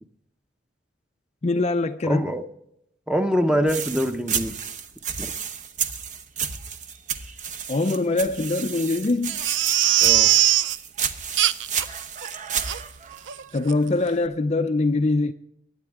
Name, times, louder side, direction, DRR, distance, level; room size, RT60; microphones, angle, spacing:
voice 1, 1.4-2.3 7.7-9.4 13.5-15.3, left 2 dB, 35° left, 0.5 m, -23 dB
voice 2, 2.0-2.4 3.1-4.6 5.2-5.3 10.0-10.3, equal, 5° right, 0.8 m, -24 dB
sound 1, 3.7-14.1, right 7 dB, 40° right, 0.8 m, -32 dB
Crying sobbing, 9.3-10.8 11.4-11.8 12.2-12.3 12.7-12.8 13.3-13.4 13.7-13.8, right 13 dB, 80° right, 0.5 m, -20 dB
20.5 x 8.8 x 3.6 m
head